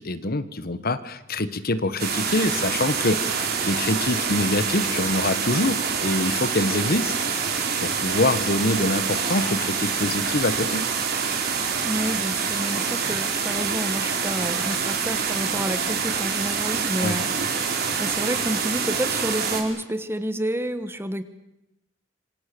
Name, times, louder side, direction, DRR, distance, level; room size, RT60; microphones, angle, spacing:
voice 1, 0.0-7.1 7.5-10.9 17.0-17.2, left 2 dB, 50° left, 13 dB, 1.4 m, -25 dB
sound 1, 2.0-19.6, right 6 dB, 55° right, 4.7 m, -26 dB
voice 2, 11.8-17.3 18.0-21.2, right 1 dB, 10° right, 11 dB, 1.5 m, -29 dB
26.5 x 25.5 x 7.0 m, 0.86 s
head